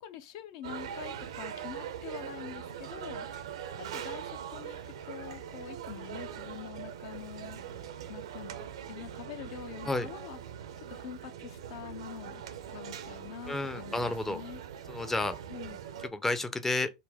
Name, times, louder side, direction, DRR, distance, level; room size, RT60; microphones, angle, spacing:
voice 1, 0.0-3.3 3.8-4.8 5.1-7.6 8.1-8.6 8.9-10.4 10.9-12.4 12.7-14.6 15.5-15.8, left 10 dB, 55° left, 0.6 m, -45 dB
sound 1, 0.6-16.1, right 8 dB, 70° right, 0.6 m, -42 dB
voice 2, 13.5-14.4 14.9-15.4 16.1-16.9, left 2 dB, 10° left, 0.5 m, -31 dB
3.9 x 2.2 x 3.5 m
hypercardioid pair, 100°, 3 cm